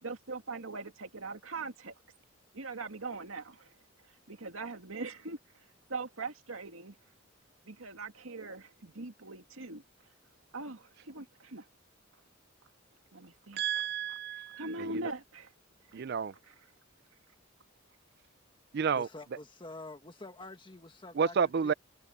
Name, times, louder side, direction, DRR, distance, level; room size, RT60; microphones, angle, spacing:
voice 1, 0.0-1.9 2.5-3.6 4.3-5.4 5.9-6.9 7.7-9.8 10.5-11.6 13.1-13.6 13.9-14.2 14.6-15.5 16.5-16.6, right 3 dB, 90° right, 2.2 m, -41 dB
voice 2, 13.6-15.0 15.9-16.3 18.7-19.1 21.2-21.7, right 6 dB, 55° right, 0.4 m, -30 dB
voice 3, 18.9-21.4 21.6-21.7, left 2 dB, 25° left, 1.6 m, -47 dB
head